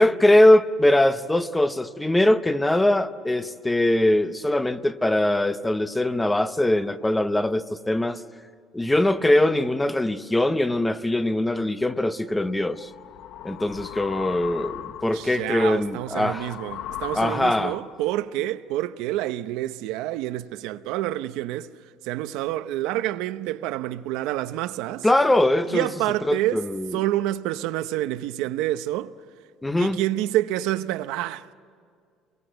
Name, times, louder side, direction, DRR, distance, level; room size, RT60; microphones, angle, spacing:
voice 1, 0.0-8.2 8.7-12.9 13.4-16.5 17.1-17.8 25.0-25.9 26.3-27.0 29.6-30.0, left 1 dB, 5° left, 0.7 m, -21 dB
sound 1, 12.3-18.1, left 11 dB, 65° left, 1.0 m, -38 dB
voice 2, 15.1-21.7 22.0-25.1 25.7-26.6 26.9-29.1 29.8-31.5, right 14 dB, 85° right, 0.8 m, -28 dB
29.0 x 23.5 x 8.0 m
cardioid pair, 160°, 0 cm